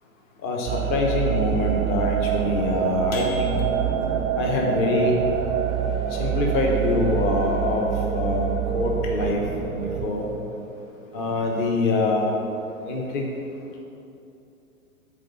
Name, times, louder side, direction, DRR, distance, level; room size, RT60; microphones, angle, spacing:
voice 1, 0.4-3.6 4.4-5.2 6.1-9.5 9.7-10.3 11.1-12.4 12.8-13.2, left 2 dB, 35° left, 0 dB, 1.2 m, -24 dB
sound 1, 0.7-10.1, right 9 dB, 20° right, 0.6 m, -26 dB
sound 2, 3.1-4.2, left 2 dB, 70° left, 2.0 m, -40 dB
8.7 x 4.3 x 7.0 m, 2.7 s
figure-of-eight pair, 115°, 42 cm